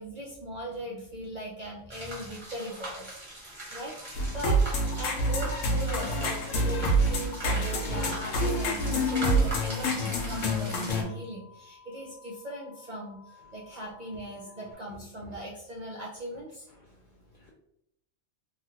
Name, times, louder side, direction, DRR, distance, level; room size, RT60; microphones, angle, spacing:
voice 1, 0.0-3.2 3.7-4.6 4.9-16.7, equal, 55° right, -4 dB, 0.5 m, -39 dB
sound 1, 1.9-10.9, right 1 dB, 25° right, 0.9 m, -41 dB
sound 2, 4.0-14.7, left 5 dB, 75° right, 1.2 m, -55 dB
sound 3, 4.1-11.0, right 1 dB, 80° left, 1.0 m, -27 dB
voice 2, 14.6-15.4 16.7-17.5, left 1 dB, 65° left, -3 dB, 0.5 m, -53 dB
3.1 x 2.3 x 2.8 m, 0.78 s
omnidirectional pair, 1.3 m